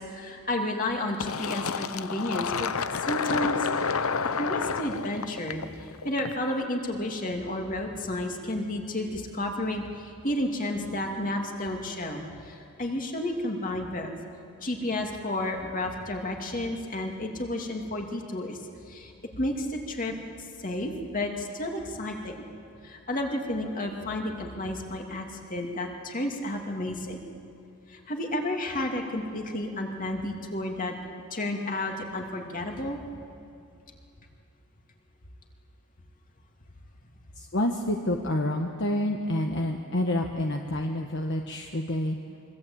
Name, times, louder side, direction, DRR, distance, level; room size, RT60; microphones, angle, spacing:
voice 1, 0.0-2.7 3.0-3.7 3.9-14.1 14.6-18.6 18.9-20.1 20.6-22.4 22.8-27.2 27.9-30.9 31.3-33.0, left 1 dB, 40° left, 2 dB, 2.7 m, -31 dB
Fill (with liquid), 1.2-6.6, left 5 dB, 80° left, 0.8 m, -30 dB
voice 2, 37.4-42.2, left 1 dB, 55° left, 2 dB, 1.4 m, -28 dB
25.0 x 23.5 x 8.8 m, 2.5 s
head